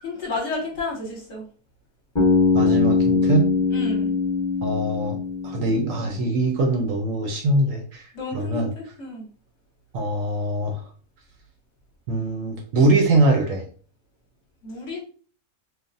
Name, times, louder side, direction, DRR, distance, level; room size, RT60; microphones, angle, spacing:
voice 1, 0.0-1.4 3.7-4.1 8.1-9.3 14.6-15.0, left 3 dB, 55° left, -1 dB, 1.0 m, -31 dB
Bass guitar, 2.2-6.2, left 4 dB, 15° left, 0.8 m, -22 dB
voice 2, 2.5-3.5 4.6-5.2 5.4-8.1 8.3-8.7 9.9-10.8 12.1-13.6, right 2 dB, 70° right, 3 dB, 0.9 m, -22 dB
3.2 x 2.0 x 2.5 m, 0.42 s
omnidirectional pair, 1.6 m